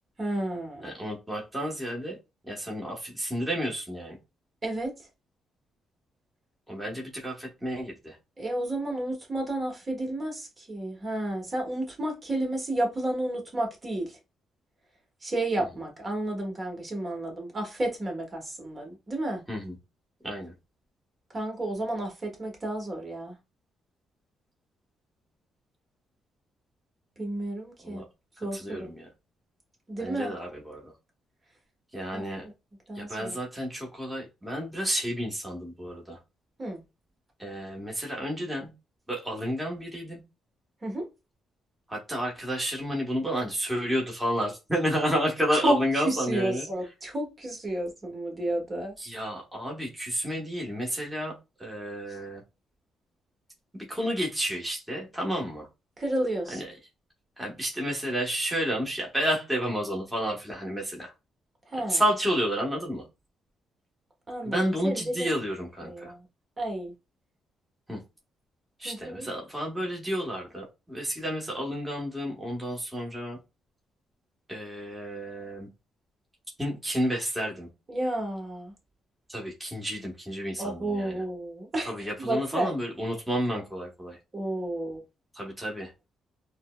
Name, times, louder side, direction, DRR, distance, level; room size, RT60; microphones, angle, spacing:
voice 1, 0.2-0.9 4.6-5.0 8.4-14.2 15.2-19.4 21.3-23.4 27.2-28.0 28.4-28.9 29.9-30.3 32.1-32.5 32.9-33.3 36.6-36.8 40.8-41.1 45.5-45.8 46.0-48.9 56.0-56.6 61.7-62.0 64.3-65.3 65.8-66.3 66.6-66.9 68.8-69.3 77.9-78.7 80.6-82.7 84.3-85.0, right 1 dB, 30° right, 1.2 m, -31 dB
voice 2, 0.8-2.2 2.5-4.2 6.7-8.2 19.5-19.7 20.2-20.5 27.8-28.0 28.4-29.1 30.0-30.9 31.9-32.5 32.9-36.2 37.4-38.7 39.1-40.2 41.9-46.7 49.0-52.4 53.7-55.7 56.5-56.7 57.4-61.1 61.9-63.1 64.4-66.1 67.9-68.0 68.8-73.4 74.5-75.7 76.6-77.7 79.3-81.2 81.8-84.2 85.3-85.9, equal, 10° right, 1.1 m, -31 dB
4.1 x 2.1 x 2.2 m
cardioid pair, 90°, 0 cm